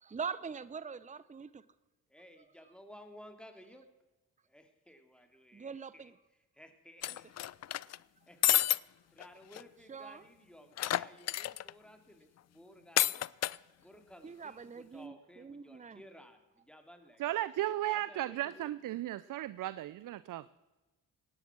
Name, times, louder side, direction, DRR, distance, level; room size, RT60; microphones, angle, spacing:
voice 1, 0.0-1.6 5.5-6.1 9.9-10.2 14.2-16.0, right 6 dB, 20° right, 16 dB, 0.7 m, -43 dB
voice 2, 2.1-3.8 4.5-6.1 6.5-7.3 8.3-8.6 9.1-13.2 13.8-17.5 17.9-18.7, equal, ahead, 6 dB, 2.8 m, -56 dB
sound 1, 7.0-8.0 8.4-8.8 9.2-9.3 9.5-9.6 10.8-11.7 13.0-13.6, left 12 dB, 45° left, 0.4 m, -30 dB
voice 3, 17.2-20.5, right 14 dB, 60° right, 17 dB, 0.6 m, -35 dB
17.5 x 9.9 x 6.1 m, 1.1 s
supercardioid pair, 55°, 36 cm